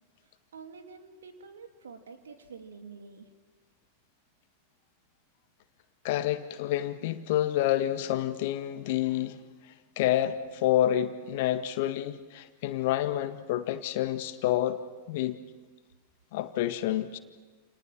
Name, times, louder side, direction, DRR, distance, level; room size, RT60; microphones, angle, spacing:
voice 1, 0.2-3.3, right 5 dB, 65° right, 2.9 m, -48 dB
voice 2, 6.0-9.4 9.7-14.8 15.1-15.4 16.3-17.2, left 12 dB, 50° left, 1.7 m, -28 dB
29.5 x 29.5 x 6.1 m
figure-of-eight pair, 90°, 0 cm